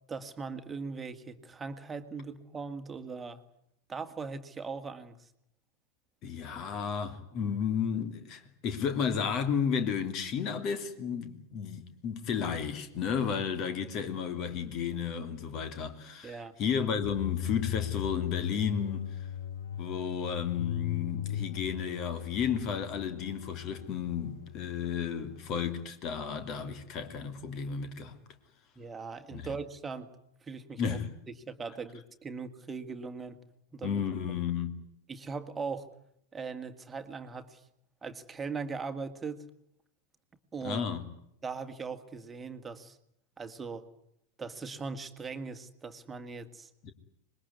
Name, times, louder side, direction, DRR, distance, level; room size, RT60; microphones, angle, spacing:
voice 1, 0.1-3.4 3.9-5.3 16.2-16.5 28.8-30.1 30.4-31.0 31.5-33.4 33.7-34.0 35.1-35.9 36.3-37.6 38.0-39.4 40.5-40.9 41.4-43.0 43.4-43.9 44.4-46.7, right 4 dB, 15° right, 2.0 m, -39 dB
voice 2, 6.2-19.1 19.8-28.1 29.3-29.5 30.8-31.1 33.8-34.8 40.6-41.0 46.8-46.9, left 7 dB, 35° left, 2.9 m, -33 dB
sound 1, 17.0-25.9, left 11 dB, 60° left, 1.1 m, -38 dB
26.0 x 21.5 x 9.6 m
figure-of-eight pair, 90°, 0 cm